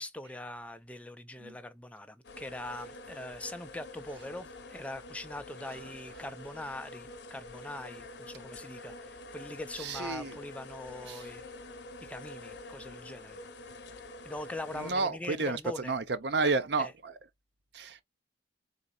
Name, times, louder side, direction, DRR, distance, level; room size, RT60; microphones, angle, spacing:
voice 1, 0.0-11.4 12.0-13.4 14.2-15.9 16.8-16.9, left 1 dB, 5° left, 0.4 m, -42 dB
sound 1, 2.2-14.9, left 2 dB, 65° left, 0.8 m, -47 dB
voice 2, 9.8-10.4 11.1-11.2 14.7-17.1 17.7-18.0, right 4 dB, 60° right, 0.7 m, -31 dB
4.0 x 4.0 x 2.3 m
head